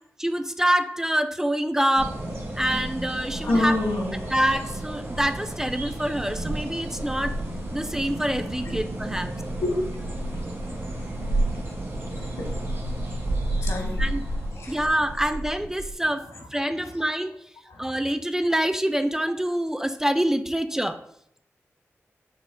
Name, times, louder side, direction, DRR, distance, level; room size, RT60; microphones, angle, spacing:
voice 1, 0.2-2.2 2.6-3.7 4.3-7.3 7.7-9.3 14.0-14.2 14.7-16.2 16.5-17.4 17.8-21.0, right 1 dB, 10° right, 0.3 m, -26 dB
sound 1, 2.0-15.9, right 1 dB, 60° right, 1.4 m, -31 dB
voice 2, 3.4-4.4 8.6-8.7 9.1-9.2 9.6-9.8 10.1-11.7 12.1-14.9 16.3-16.4 16.8-16.9 17.7-17.9, left 2 dB, 80° left, 1.0 m, -31 dB
5.5 x 2.1 x 3.7 m
cardioid pair, 50°, 5 cm